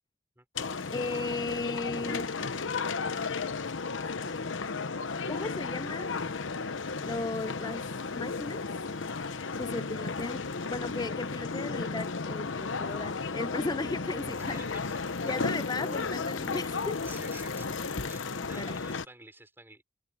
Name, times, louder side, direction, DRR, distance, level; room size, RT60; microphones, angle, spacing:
sound 1, 0.6-19.1, left 4 dB, 70° left, 0.9 m, -34 dB
voice 1, 0.9-2.3 5.3-6.1 7.0-8.6 9.6-14.6 15.2-17.0 18.4-18.8, left 3 dB, 20° left, 0.4 m, -36 dB
voice 2, 14.5-15.3 17.0-17.7 18.0-19.8, right 2 dB, 10° right, 5.8 m, -49 dB
head